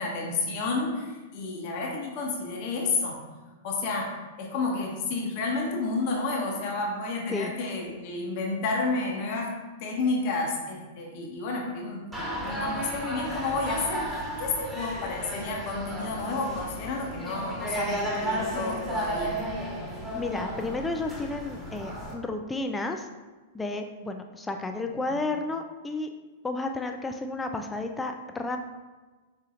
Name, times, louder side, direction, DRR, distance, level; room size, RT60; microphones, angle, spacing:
voice 1, 0.0-3.2 3.6-9.5 9.8-12.0 12.4-19.4, left 3 dB, 50° left, 0 dB, 0.8 m, -30 dB
sound 1, 12.1-22.1, right 1 dB, 5° right, 1.2 m, -33 dB
voice 2, 20.1-23.1 23.5-26.1 26.4-28.6, left 2 dB, 10° left, 5 dB, 0.3 m, -32 dB
4.2 x 3.7 x 2.5 m, 1.3 s
hypercardioid pair, 110°, 0 cm